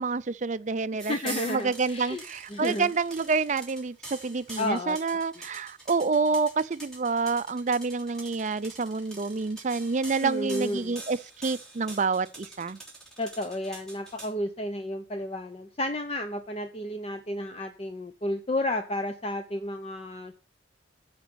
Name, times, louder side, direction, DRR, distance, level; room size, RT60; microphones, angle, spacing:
voice 1, 0.0-12.8, right 4 dB, 40° right, 0.5 m, -28 dB
sound 1, 1.0-14.3, right 2 dB, 5° left, 3.2 m, -44 dB
voice 2, 1.1-2.2 2.5-2.9 4.6-5.0 10.2-11.0 13.2-20.3, left 1 dB, 30° left, 0.7 m, -32 dB
12.5 x 5.1 x 6.8 m
head